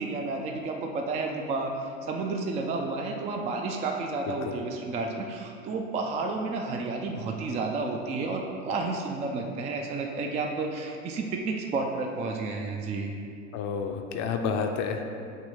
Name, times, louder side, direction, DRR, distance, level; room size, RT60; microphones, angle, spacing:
voice 1, 0.0-13.1, right 3 dB, 20° right, 2 dB, 0.3 m, -31 dB
voice 2, 4.3-4.6 13.5-15.0, left 6 dB, 45° left, 4 dB, 0.5 m, -30 dB
6.4 x 2.7 x 5.3 m, 2.4 s
hypercardioid pair, 95°, 39 cm